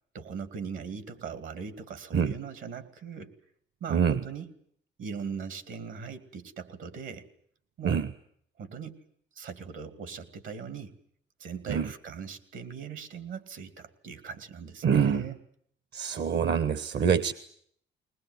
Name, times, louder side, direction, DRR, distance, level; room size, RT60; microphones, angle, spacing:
voice 1, 0.1-3.3 3.8-4.5 5.0-7.3 7.8-8.0 8.6-9.0 9.4-10.9 11.4-15.4, right 6 dB, 75° right, 13 dB, 2.6 m, -40 dB
voice 2, 3.9-4.2 7.8-8.1 11.7-11.9 14.8-15.2 15.9-17.3, right 7 dB, 60° right, 15 dB, 1.0 m, -25 dB
21.0 x 20.5 x 9.4 m, 0.65 s
cardioid pair, 90°, 20 cm